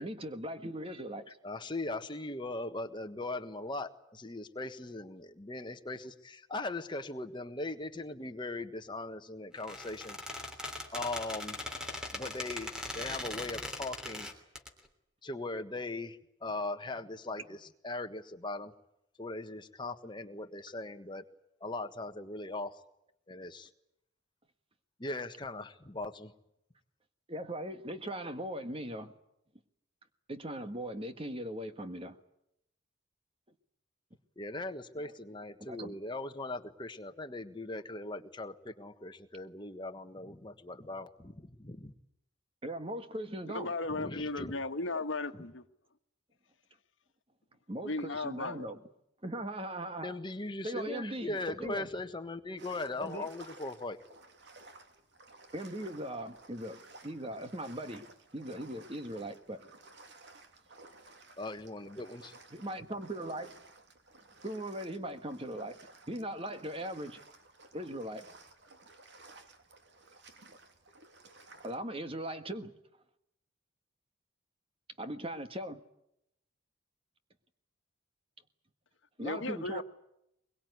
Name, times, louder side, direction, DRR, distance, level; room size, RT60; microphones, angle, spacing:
voice 1, 0.0-1.3 27.3-29.1 30.3-32.2 35.6-36.0 42.6-43.7 47.7-48.8 49.2-50.2 50.6-51.9 53.0-53.3 55.5-59.6 62.5-63.5 64.4-65.8 66.1-67.2 67.7-68.3 71.6-72.7 75.0-75.8 79.2-79.8, right 1 dB, 30° right, 1.6 m, -39 dB
voice 2, 1.3-10.2 10.9-11.6 12.1-14.3 15.2-18.7 19.2-21.2 21.6-22.8 23.3-23.7 25.0-26.3 34.4-41.9 43.9-44.6 45.3-45.4 50.0-54.0 61.4-62.3, left 2 dB, 25° left, 1.5 m, -39 dB
Squeak, 9.6-14.7, left 1 dB, 5° right, 3.1 m, -40 dB
voice 3, 43.5-45.6 47.8-48.7 79.2-79.8, left 2 dB, 75° left, 1.4 m, -36 dB
sound 1, 52.6-71.8, right 3 dB, 60° right, 2.8 m, -56 dB
23.0 x 22.5 x 9.5 m
head